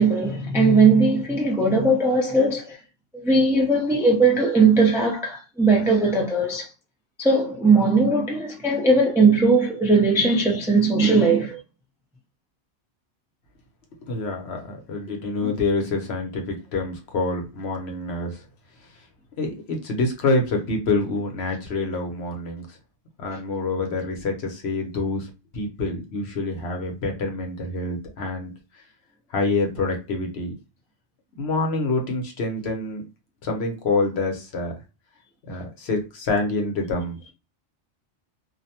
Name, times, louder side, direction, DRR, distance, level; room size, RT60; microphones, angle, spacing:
voice 1, 0.0-2.8 3.1-6.7 7.2-11.6 15.4-15.5, right 3 dB, 5° right, 0.3 m, -19 dB
voice 2, 14.1-18.4 19.4-22.8 23.2-28.5 29.3-30.5 31.4-33.1 33.4-34.8 35.5-37.2, left 3 dB, 65° left, 0.9 m, -26 dB
2.6 x 2.1 x 2.7 m
omnidirectional pair, 1.2 m